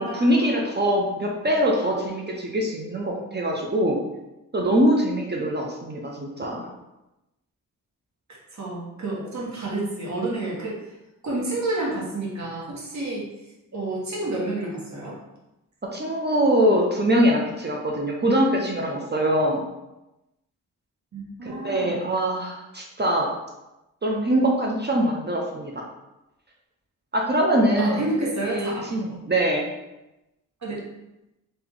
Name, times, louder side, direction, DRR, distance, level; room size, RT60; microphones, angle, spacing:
voice 1, 0.0-4.0 4.5-6.7 15.8-19.6 21.4-23.3 24.0-25.8 27.1-28.0 28.4-29.7, right 1 dB, 30° right, -1 dB, 0.7 m, -23 dB
voice 2, 8.5-10.8 11.2-13.3 13.7-15.2 21.1-22.0 27.8-29.2 30.6-30.8, right 2 dB, 50° right, -4 dB, 1.4 m, -30 dB
3.1 x 2.9 x 3.7 m, 0.95 s
cardioid pair, 65°, 35 cm